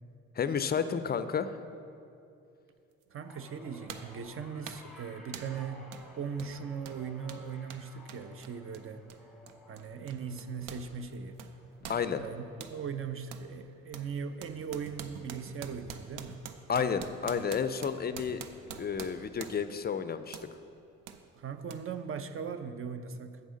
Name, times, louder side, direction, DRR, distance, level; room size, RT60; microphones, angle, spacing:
voice 1, 0.4-1.6 11.9-12.2 16.7-18.4 18.8-20.4, left 6 dB, 30° left, 11 dB, 0.4 m, -31 dB
sound 1, 3.0-3.1 3.9-4.2 4.7-4.9 5.3-5.6 5.9-6.1 6.4-10.9 11.1-12.8 13.3-13.5 13.9-19.8 20.3-20.5 21.1-21.2 21.7-21.8, right 8 dB, 85° right, 0.5 m, -46 dB
voice 2, 3.1-5.9 6.2-9.0 9.7-11.4 12.2-12.4 12.7-16.4 21.3-23.4, right 6 dB, 45° right, 10 dB, 0.6 m, -39 dB
sound 2, 3.2-13.6 14.0-14.4 15.5-15.6, left 1 dB, ahead, 1.1 m, -56 dB
7.9 x 5.4 x 6.3 m, 2.6 s
supercardioid pair, 70°, 31 cm